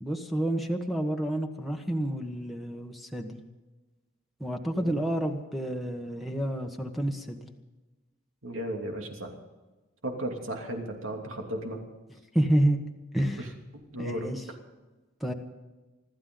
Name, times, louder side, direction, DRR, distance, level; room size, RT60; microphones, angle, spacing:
voice 1, 0.0-3.4 4.4-7.5 12.3-12.8 13.1-13.5 14.0-14.4 15.2-15.3, right 1 dB, ahead, 4 dB, 1.2 m, -29 dB
voice 2, 8.4-9.3 10.0-11.8 13.4-13.5 13.7-14.3, right 1 dB, 80° right, 2 dB, 2.9 m, -35 dB
25.5 x 13.0 x 3.9 m, 1.2 s
head